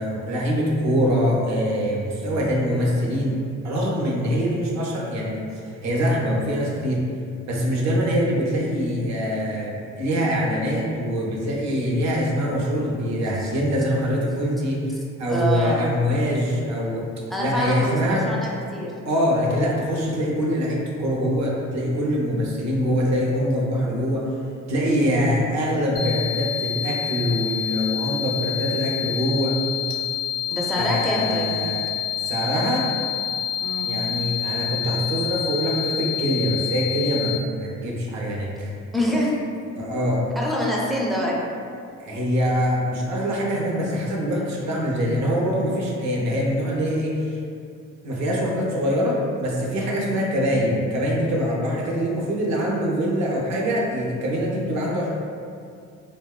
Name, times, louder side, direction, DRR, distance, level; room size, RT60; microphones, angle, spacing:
voice 1, 0.0-3.4 3.6-7.0 7.5-14.8 15.2-17.1 17.4-18.3 19.0-24.3 24.7-29.6 30.7-31.9 32.2-32.9 33.8-38.7 39.8-40.3 42.0-47.4 48.0-55.1, equal, 65° right, -3 dB, 0.6 m, -24 dB
voice 2, 15.3-15.9 17.3-18.9 25.0-25.5 30.5-31.8 33.6-34.0 38.9-39.4 40.4-41.5 50.0-50.3, equal, ahead, -4 dB, 0.4 m, -26 dB
sound 1, 26.0-37.4, left 10 dB, 55° left, 0.5 m, -28 dB
2.9 x 2.1 x 2.3 m, 2.3 s
cardioid pair, 90°, 30 cm